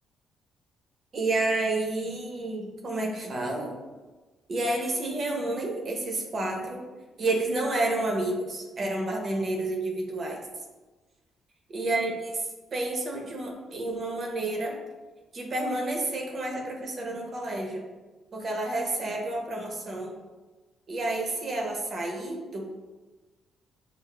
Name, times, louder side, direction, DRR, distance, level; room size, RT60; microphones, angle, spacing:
voice 1, 1.1-3.8 4.5-6.8 7.2-10.4 11.7-12.5 12.7-14.8 15.3-17.9 18.3-20.1 20.9-22.6, right 2 dB, 45° right, 1 dB, 0.7 m, -30 dB
5.8 x 2.0 x 2.2 m, 1.3 s
cardioid pair, 90°, 0 cm